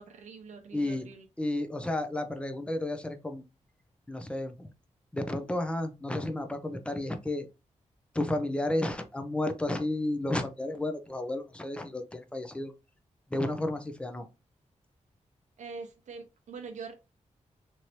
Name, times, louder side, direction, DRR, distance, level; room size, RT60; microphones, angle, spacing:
voice 1, 0.0-1.3 15.6-16.9, right 4 dB, 80° right, 0.7 m, -44 dB
voice 2, 0.7-1.1 1.4-3.4 4.1-4.7 5.1-7.5 8.1-12.7 13.3-14.3, left 1 dB, 10° left, 0.5 m, -32 dB
3.1 x 2.7 x 2.8 m
wide cardioid pair, 110°, 12 cm